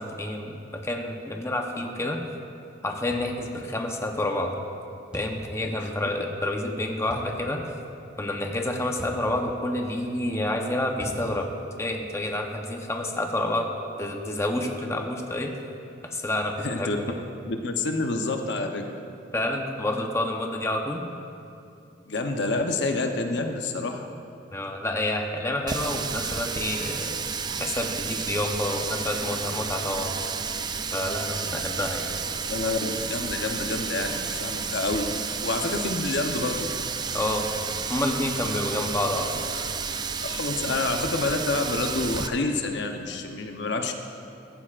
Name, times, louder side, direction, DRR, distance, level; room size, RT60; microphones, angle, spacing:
voice 1, 0.0-2.2 2.8-4.5 5.1-7.6 8.2-13.7 14.0-15.5 16.0-17.1 19.3-21.0 24.5-30.1 30.9-32.1 37.1-37.5 37.9-39.7, left 1 dB, 15° left, 2 dB, 0.8 m, -29 dB
sound 1, 3.1-3.3 5.1-5.4 7.1-7.3 9.0-9.3 11.0-11.3, equal, 5° right, 1.4 m, -38 dB
voice 2, 16.6-17.0 17.4-18.8 22.1-24.1 32.5-36.7 40.2-43.9, left 3 dB, 65° left, 4 dB, 0.8 m, -28 dB
Water tap faucet, 25.7-42.3, right 5 dB, 25° right, 0.4 m, -31 dB
15.0 x 14.5 x 2.5 m, 2.6 s
head